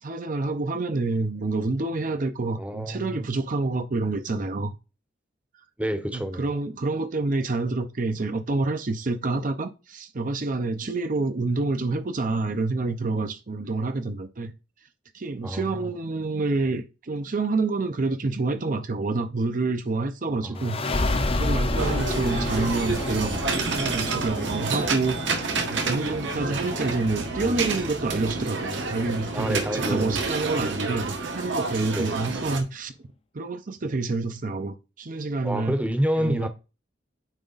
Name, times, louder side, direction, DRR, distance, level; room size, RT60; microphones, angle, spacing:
voice 1, 0.0-4.8 6.1-14.5 15.1-21.1 21.4-23.4 23.7-25.3 25.7-32.9 33.3-35.8 36.2-36.5, right 3 dB, 45° right, 0.6 m, -28 dB
voice 2, 2.6-3.2 5.8-6.5 15.4-15.9 20.4-21.0 29.3-30.3 31.9-32.1 35.4-36.5, equal, 10° right, 0.8 m, -28 dB
sound 1, 20.6-31.8, left 2 dB, 30° left, 0.6 m, -31 dB
sound 2, 21.8-32.6, right 4 dB, 75° right, 1.4 m, -29 dB
9.0 x 3.4 x 4.0 m
head